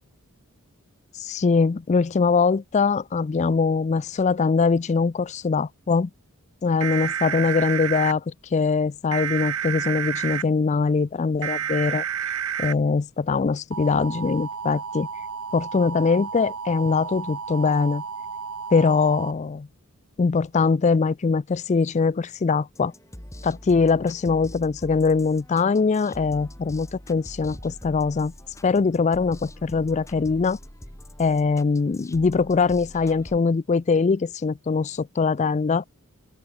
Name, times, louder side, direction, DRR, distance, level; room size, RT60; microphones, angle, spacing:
voice 1, 1.2-6.1 6.6-12.0 12.6-15.1 15.5-18.0 18.7-19.7 20.2-22.9 23.4-28.3 28.6-30.6 31.2-35.9, left 4 dB, 30° left, 0.3 m, -22 dB
sound 1, 6.8-8.1 9.1-10.4 11.4-12.7 13.7-19.3, right 7 dB, 85° right, 1.5 m, -31 dB
sound 2, 22.7-33.4, equal, 15° left, 4.3 m, -43 dB
open air
head